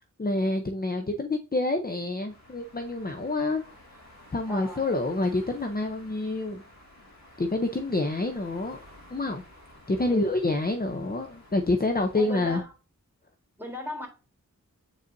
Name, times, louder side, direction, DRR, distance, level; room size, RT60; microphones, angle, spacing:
voice 1, 0.2-3.6 4.3-6.6 7.4-8.8 9.1-9.4 9.9-12.6, left 2 dB, 30° left, 0.7 m, -27 dB
sound 1, 2.3-12.6, left 1 dB, 55° left, 2.2 m, -52 dB
voice 2, 4.5-4.8 10.0-10.4 12.1-12.7 13.6-14.1, left 1 dB, 5° right, 3.3 m, -37 dB
8.3 x 5.1 x 2.7 m
wide cardioid pair, 60°, 32 cm